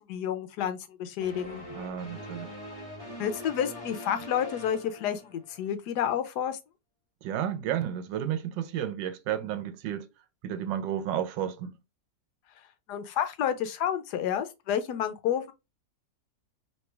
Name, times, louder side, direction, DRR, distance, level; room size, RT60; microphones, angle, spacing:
voice 1, 0.0-1.6 3.2-6.6 12.9-15.5, left 9 dB, 75° left, 1.1 m, -30 dB
sound 1, 1.2-5.7, left 1 dB, 25° left, 1.0 m, -43 dB
voice 2, 1.7-2.5 7.2-10.1 10.4-11.7, right 10 dB, 90° right, 1.3 m, -32 dB
3.2 x 2.9 x 3.2 m
omnidirectional pair, 1.9 m